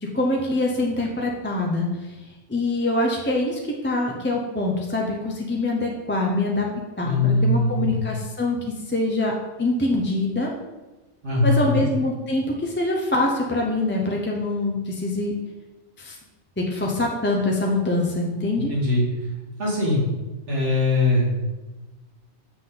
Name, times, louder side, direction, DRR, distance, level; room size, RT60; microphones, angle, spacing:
voice 1, 0.0-6.7 7.0-9.3 9.6-10.5 11.4-15.4 16.0-16.2 16.6-18.7, left 2 dB, 10° left, -1 dB, 0.6 m, -24 dB
voice 2, 7.0-8.0 11.2-11.9 18.7-19.0 19.6-20.0 20.5-21.4, left 2 dB, 75° right, -5 dB, 2.3 m, -21 dB
7.3 x 5.9 x 3.9 m, 1.1 s
omnidirectional pair, 1.2 m